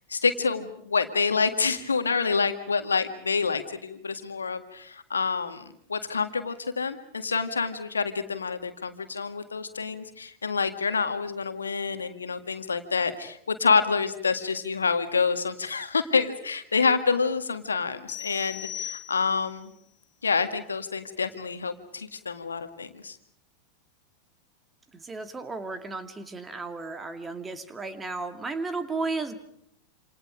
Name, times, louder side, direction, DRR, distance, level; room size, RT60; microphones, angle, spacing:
voice 1, 0.1-5.6 5.9-19.7 20.2-23.2, left 5 dB, 75° left, 9 dB, 1.9 m, -27 dB
sound 1, 18.1-19.6, left 11 dB, 30° left, 1.2 m, -38 dB
voice 2, 24.9-29.3, right 3 dB, 15° right, 9 dB, 2.2 m, -34 dB
28.0 x 27.5 x 5.1 m, 0.69 s
figure-of-eight pair, 90°, 0 cm